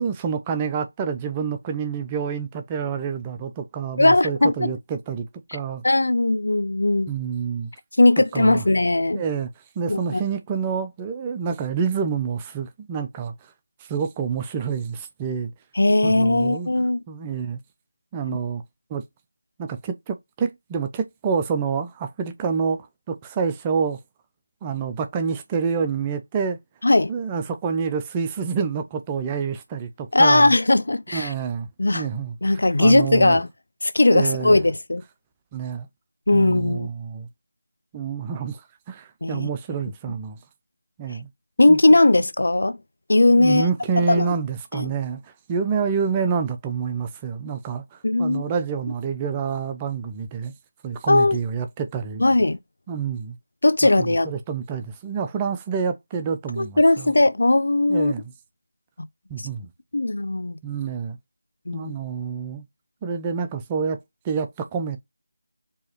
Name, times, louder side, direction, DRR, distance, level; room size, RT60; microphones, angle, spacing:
voice 1, 0.0-5.8 7.1-7.7 8.3-8.6 9.1-9.5 9.8-13.3 13.9-15.5 16.0-16.7 17.1-17.6 18.1-18.6 18.9-19.0 19.6-24.0 24.6-26.6 27.1-30.5 31.1-31.7 31.9-32.5 32.8-33.4 34.1-34.6 35.5-35.9 36.3-37.3 37.9-38.6 38.9-40.4 41.0-41.3 41.7-41.8 43.3-50.5 50.8-52.2 52.9-53.4 54.0-57.1 57.9-58.3 59.3-59.7 60.6-61.2 61.7-62.6 63.0-64.0 64.2-65.0, right 6 dB, 15° right, 0.4 m, -27 dB
voice 2, 4.0-4.7 5.8-7.1 8.0-9.2 9.9-10.2 15.8-17.0 26.8-27.1 30.1-31.3 31.8-32.0 32.4-33.5 33.8-35.0 36.3-36.9 39.2-39.5 41.6-42.8 43.1-43.7 44.0-44.3 44.7-44.9 48.0-48.4 51.1-51.4 52.2-52.6 53.6-54.3 56.6-58.1 59.9-60.5 61.7-61.9, left 2 dB, 65° left, 0.5 m, -18 dB
4.6 x 2.8 x 3.0 m
figure-of-eight pair, 165°, 0 cm